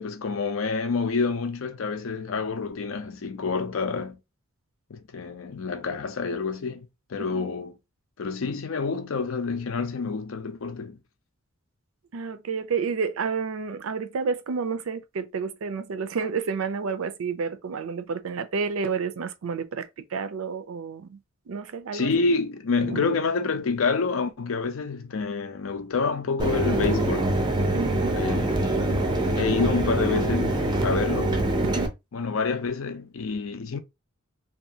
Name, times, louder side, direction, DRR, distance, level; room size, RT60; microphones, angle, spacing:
voice 1, 0.0-4.2 4.9-7.7 8.2-11.0 21.9-27.4 28.1-29.1 29.4-31.5 32.1-33.8, left 4 dB, 75° left, 0.5 m, -28 dB
voice 2, 12.1-21.2 21.5-22.1 22.9-23.1 27.7-28.2 31.6-31.9, right 5 dB, 80° right, 0.4 m, -30 dB
Mechanisms, 26.4-31.9, right 1 dB, 20° right, 0.4 m, -24 dB
2.7 x 2.3 x 2.7 m
head